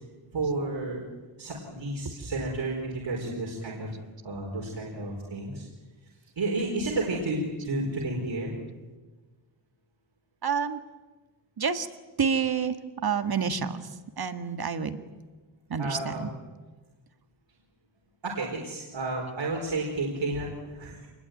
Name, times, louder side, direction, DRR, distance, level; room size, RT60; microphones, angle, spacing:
voice 1, 0.3-1.0 1.4-3.9 4.2-5.7 6.4-8.5 15.8-16.3 18.2-21.1, right 2 dB, 75° right, -2 dB, 4.6 m, -31 dB
voice 2, 6.6-6.9 10.4-10.8 11.6-11.9 12.2-12.8 13.0-15.0 15.7-16.3, right 6 dB, 55° right, 9 dB, 1.8 m, -29 dB
27.0 x 21.0 x 9.4 m, 1.3 s
wide cardioid pair, 140°, 45 cm